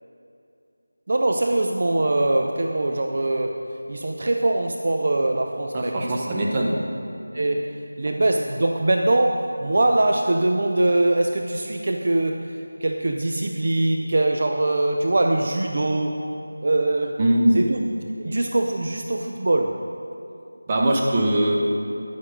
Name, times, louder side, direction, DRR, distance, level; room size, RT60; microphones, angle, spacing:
voice 1, 1.1-3.6 3.9-6.3 7.3-12.5 12.8-16.2 16.6-17.2 17.5-17.8 18.2-19.8, right 2 dB, 45° right, 3 dB, 0.6 m, -22 dB
voice 2, 5.7-6.8 17.2-17.6 20.7-21.6, right 1 dB, 20° right, -1 dB, 0.9 m, -21 dB
10.5 x 8.9 x 5.1 m, 2.6 s
figure-of-eight pair, 170°, 0 cm